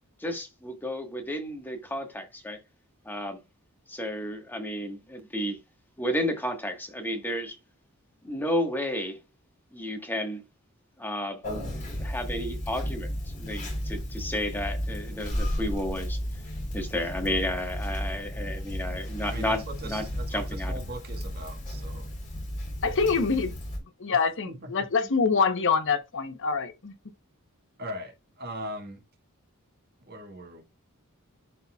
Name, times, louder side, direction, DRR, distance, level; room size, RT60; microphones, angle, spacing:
voice 1, 0.2-2.6 3.0-3.4 3.9-5.6 6.0-7.6 8.2-9.2 9.7-10.4 11.0-11.4 11.7-16.2 16.7-20.0 20.3-20.7, left 1 dB, 10° left, 1.4 m, -32 dB
Conversation, 11.4-23.8, equal, 35° left, 3.6 m, -33 dB
voice 2, 19.3-22.1 24.2-24.7 27.8-29.0 30.1-30.6, right 1 dB, 45° right, 1.7 m, -40 dB
voice 3, 22.8-23.5 24.0-26.9, left 5 dB, 60° left, 0.9 m, -25 dB
11.5 x 4.2 x 2.3 m
head